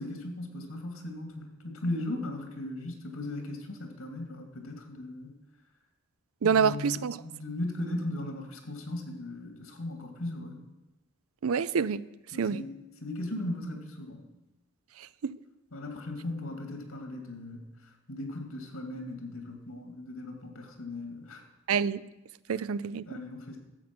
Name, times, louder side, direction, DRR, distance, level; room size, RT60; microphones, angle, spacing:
voice 1, 0.0-5.3 6.4-10.6 12.3-14.3 15.7-17.6 18.1-21.4 23.1-23.6, left 1 dB, 85° left, 4 dB, 2.4 m, -37 dB
voice 2, 6.4-7.2 11.4-12.0 12.4-12.6 15.2-15.3 21.7-22.0 22.5-23.0, right 6 dB, 85° right, 17 dB, 0.5 m, -26 dB
12.5 x 7.8 x 6.1 m, 0.99 s
head